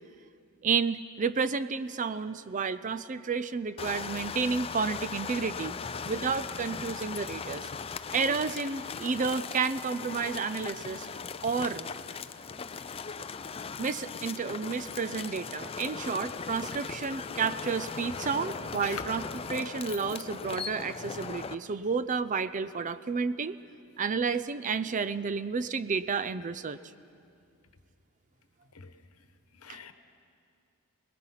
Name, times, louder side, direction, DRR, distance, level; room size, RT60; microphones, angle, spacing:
voice 1, 0.6-5.8 6.1-7.7 8.1-11.1 11.4-11.9 13.8-19.2 19.5-23.6 24.0-26.8 29.7-29.8, right 5 dB, 35° right, 14 dB, 0.4 m, -31 dB
sound 1, 3.8-21.5, left 5 dB, 25° left, 0.4 m, -39 dB
voice 2, 5.8-6.1 18.1-18.5 18.8-19.1 28.7-29.9, left 6 dB, 80° left, 9 dB, 1.1 m, -46 dB
25.0 x 20.0 x 5.8 m, 2.4 s
head